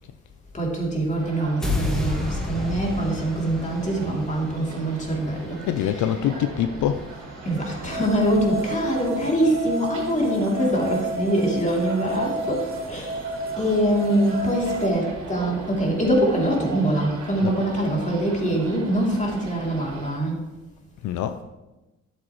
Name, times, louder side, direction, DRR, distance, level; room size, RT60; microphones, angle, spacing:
voice 1, 0.5-6.1 7.4-20.4, right 1 dB, 25° left, -2 dB, 3.0 m, -24 dB
sound 1, 1.2-20.2, right 2 dB, 70° right, 3.6 m, -39 dB
sound 2, 1.6-7.8, left 2 dB, ahead, 1.9 m, -32 dB
voice 2, 5.6-7.1 17.4-17.7 21.0-21.4, left 10 dB, 75° left, 9 dB, 0.5 m, -25 dB
sound 3, 7.9-14.9, right 2 dB, 30° right, 1.4 m, -31 dB
12.0 x 7.4 x 3.1 m, 1.1 s
cardioid pair, 90°, 30 cm